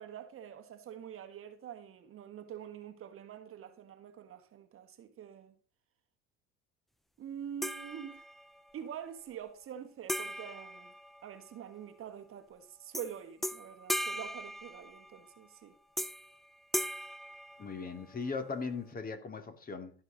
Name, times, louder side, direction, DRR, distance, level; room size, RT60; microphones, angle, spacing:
voice 1, 0.0-5.5 7.2-8.3 8.7-10.9 11.2-15.8, right 9 dB, 45° right, 1.4 m, -46 dB
sound 1, 7.6-8.6 10.1-11.7 12.9-13.1 13.4-15.3 16.0-16.4 16.7-18.2, equal, ahead, 0.5 m, -38 dB
voice 2, 17.6-19.9, left 4 dB, 30° left, 2.2 m, -38 dB
15.0 x 5.7 x 3.9 m
hypercardioid pair, 80°, 31 cm